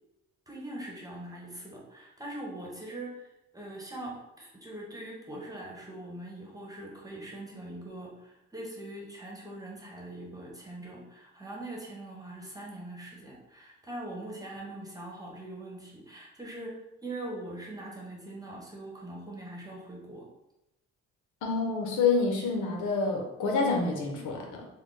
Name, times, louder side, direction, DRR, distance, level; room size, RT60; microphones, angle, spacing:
voice 1, 0.5-20.3, right 1 dB, 10° right, -3 dB, 1.1 m, -42 dB
voice 2, 21.4-24.6, left 4 dB, 80° left, 1 dB, 0.8 m, -28 dB
3.6 x 2.2 x 3.8 m, 0.90 s
cardioid pair, 90°, 30 cm